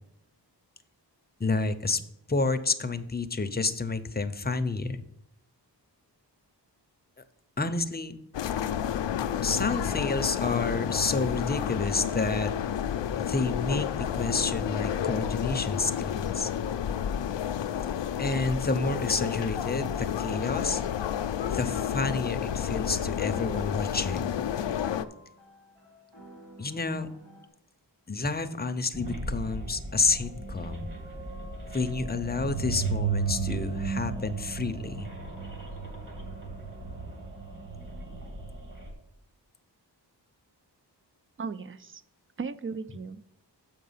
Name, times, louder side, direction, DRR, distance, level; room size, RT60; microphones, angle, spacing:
voice 1, 1.4-2.0 2.3-5.0 7.6-8.2 9.4-12.5 13.2-16.5 18.2-20.8 21.5-24.3 26.6-27.1 28.1-30.9 31.7-35.1, left 3 dB, 25° left, 9 dB, 0.6 m, -29 dB
sound 1, 8.3-25.1, left 9 dB, 85° left, 0.5 m, -30 dB
sound 2, 22.0-27.5, equal, 85° right, 2.0 m, -54 dB
sound 3, 28.9-38.9, right 5 dB, 50° right, 2.4 m, -34 dB
voice 2, 41.4-42.0 42.4-43.3, right 5 dB, 30° right, 14 dB, 0.4 m, -36 dB
7.4 x 5.1 x 5.5 m, 0.80 s
wide cardioid pair, 100°, 42 cm